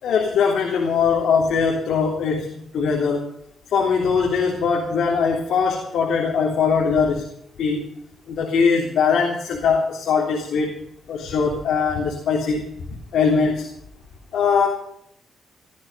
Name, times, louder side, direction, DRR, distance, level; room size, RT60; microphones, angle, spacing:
voice 1, 0.0-3.2 3.7-7.2 7.6-7.8 8.3-10.7 11.1-12.6 13.1-13.7 14.3-14.7, left 5 dB, 70° left, 0 dB, 3.5 m, -21 dB
18.0 x 13.0 x 5.1 m, 0.71 s
wide cardioid pair, 170°, 0 cm